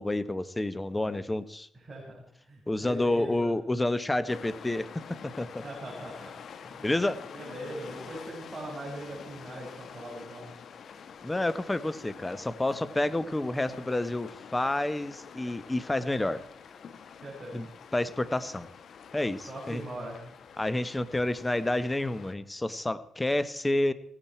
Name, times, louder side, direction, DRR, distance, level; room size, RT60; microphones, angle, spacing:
voice 1, 0.0-1.7 2.7-4.9 5.2-5.6 6.8-7.2 11.2-16.4 17.5-17.7 17.9-18.7 19.1-19.8 20.6-23.9, left 1 dB, 15° left, 15 dB, 1.1 m, -29 dB
voice 2, 1.7-3.5 5.6-6.3 6.6-6.9 7.3-10.5 17.2-17.6 19.5-20.2, right 1 dB, 20° right, -4 dB, 5.7 m, -40 dB
sound 1, 4.3-22.3, left 6 dB, 60° left, 1.3 m, -47 dB
17.0 x 16.5 x 4.5 m, 0.63 s
cardioid pair, 90°, 0 cm